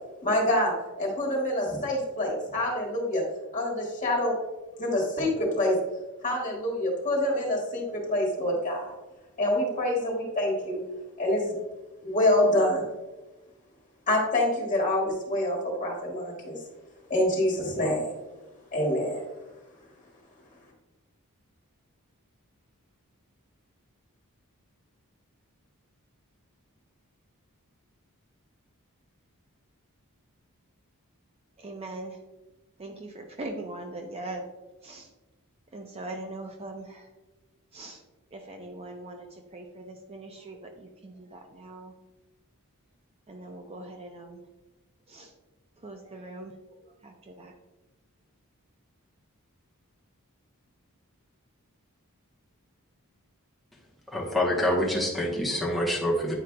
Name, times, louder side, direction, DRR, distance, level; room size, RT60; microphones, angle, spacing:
voice 1, 0.2-3.2 3.5-4.4 4.8-5.7 6.2-8.9 9.4-10.8 11.2-11.5 12.0-12.8 14.1-16.6 17.1-18.1 18.7-19.2, left 1 dB, 35° left, -2 dB, 1.7 m, -26 dB
voice 2, 31.6-32.2 32.8-34.4 34.8-35.1 35.7-37.0 37.7-38.0 38.3-39.3 39.5-41.9 43.3-44.4 45.1-45.3 45.8-46.5 47.0-47.5, right 2 dB, 25° right, 4 dB, 0.5 m, -41 dB
voice 3, 54.1-56.3, left 1 dB, ahead, -3 dB, 1.0 m, -26 dB
9.1 x 4.8 x 2.2 m, 1.1 s
head